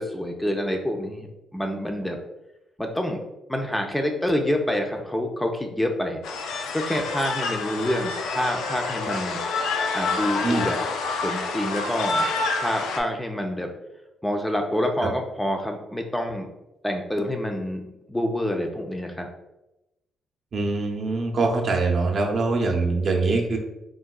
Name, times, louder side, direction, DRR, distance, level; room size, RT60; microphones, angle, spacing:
voice 1, 0.0-2.2 2.8-3.2 3.5-6.2 6.7-9.4 9.9-10.8 11.2-12.3 12.6-13.7 14.2-16.5 16.8-19.3, left 1 dB, 10° left, 3 dB, 0.4 m, -27 dB
sound 1, 6.2-13.0, left 3 dB, 85° left, 0.3 m, -28 dB
voice 2, 20.5-23.6, right 3 dB, 50° right, 1 dB, 0.5 m, -23 dB
3.7 x 2.1 x 2.2 m, 0.94 s
cardioid pair, 90°, 0 cm